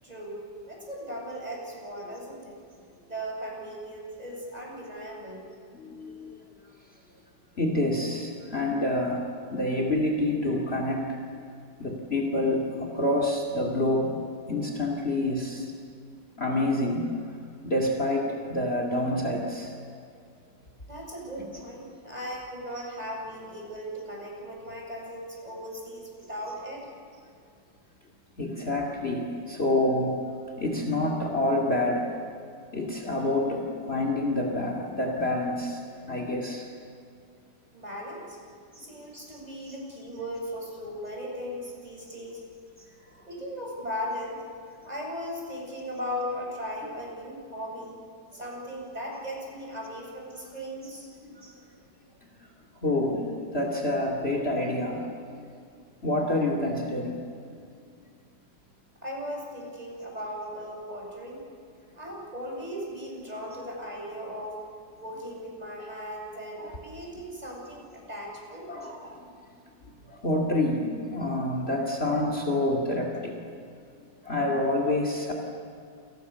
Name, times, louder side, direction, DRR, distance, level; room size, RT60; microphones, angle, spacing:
voice 1, 0.0-2.6 3.0-5.5 20.9-26.9 37.7-38.4 38.8-42.4 43.3-44.4 44.8-48.0 48.3-51.1 59.0-61.4 61.9-64.6 65.0-68.7, equal, 20° right, -2 dB, 8.1 m, -37 dB
voice 2, 5.7-6.4 7.6-11.2 11.8-14.2 14.5-15.7 16.4-17.1 17.6-19.7 28.4-30.2 30.6-32.1 32.7-36.7 38.7-38.9 51.2-51.6 52.8-55.4 56.0-57.2 66.6-66.8 68.7-69.3 70.1-73.4 74.0-75.3, left 1 dB, 35° left, 2 dB, 3.0 m, -28 dB
29.5 x 28.0 x 7.1 m, 2.4 s
omnidirectional pair, 1.9 m